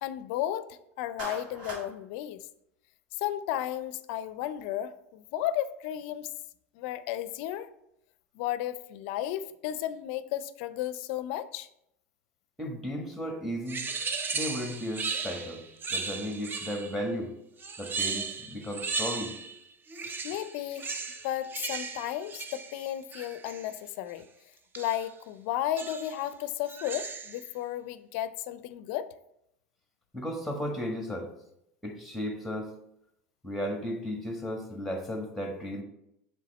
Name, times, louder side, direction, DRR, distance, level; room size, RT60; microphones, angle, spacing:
voice 1, 0.0-2.4 3.2-6.3 6.8-7.7 8.4-11.7 20.2-21.0 21.2-24.3 24.8-29.1, left 12 dB, 65° left, 0.4 m, -34 dB
Clapping, 1.2-1.9, right 2 dB, 60° right, 1.8 m, -39 dB
voice 2, 12.6-13.9 14.3-15.6 15.9-17.3 17.8-19.3 30.1-31.3 31.8-32.7 33.4-35.8, equal, ahead, 1.5 m, -34 dB
sound 1, 13.7-17.0 17.6-19.6 19.9-23.7 24.7-25.1 25.8-26.2 26.7-27.5, right 5 dB, 30° right, 0.6 m, -36 dB
7.5 x 3.4 x 4.1 m
hypercardioid pair, 90°, 7 cm